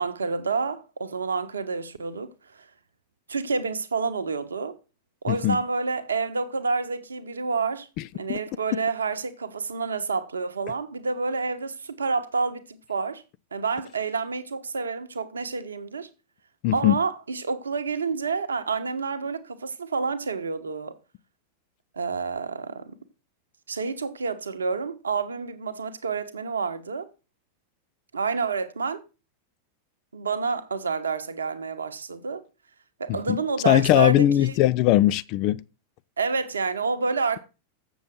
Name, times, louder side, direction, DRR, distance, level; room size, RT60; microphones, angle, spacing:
voice 1, 0.0-2.3 3.3-4.8 5.2-7.9 8.2-13.2 13.5-16.1 16.7-20.9 21.9-23.0 23.7-27.1 28.1-29.0 30.1-32.4 33.0-34.5 36.2-37.4, right 4 dB, 70° right, 1.0 m, -29 dB
voice 2, 5.3-5.6 8.3-8.4 16.6-17.0 33.3-33.4 33.7-35.6, left 14 dB, 40° left, 0.4 m, -20 dB
7.2 x 7.1 x 6.0 m
figure-of-eight pair, 90°, 0 cm